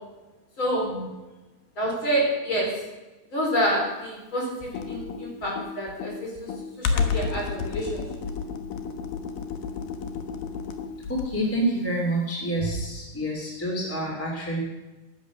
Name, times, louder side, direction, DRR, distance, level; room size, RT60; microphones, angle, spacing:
voice 1, 0.6-0.9 1.8-2.7 3.3-6.5 6.8-8.0, equal, 30° left, -1 dB, 4.5 m, -27 dB
Computer keyboard, 4.6-11.5, left 5 dB, 70° left, 2.7 m, -31 dB
voice 2, 11.1-14.6, right 1 dB, 5° left, -1 dB, 2.0 m, -28 dB
14.0 x 11.5 x 6.3 m, 1.1 s
omnidirectional pair, 4.6 m